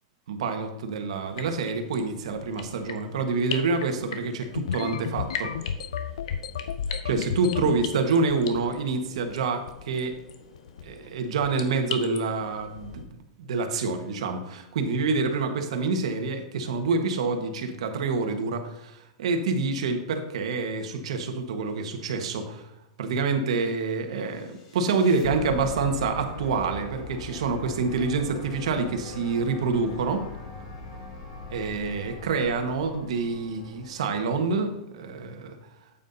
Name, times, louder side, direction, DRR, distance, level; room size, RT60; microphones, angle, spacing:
voice 1, 0.3-5.5 7.0-10.2 10.8-22.7 23.0-30.2 31.5-35.6, right 4 dB, 75° right, 5 dB, 1.5 m, -27 dB
sound 1, 1.3-13.0, left 7 dB, 70° left, 1.1 m, -41 dB
sound 2, 4.5-7.8 8.3-8.8 9.1-9.3 9.7-10.0 10.5-10.8, left 8 dB, 85° left, 0.4 m, -32 dB
sound 3, 24.3-34.5, left 3 dB, 55° left, 3.0 m, -41 dB
9.0 x 8.6 x 2.8 m, 0.92 s
hypercardioid pair, 135°, 3 cm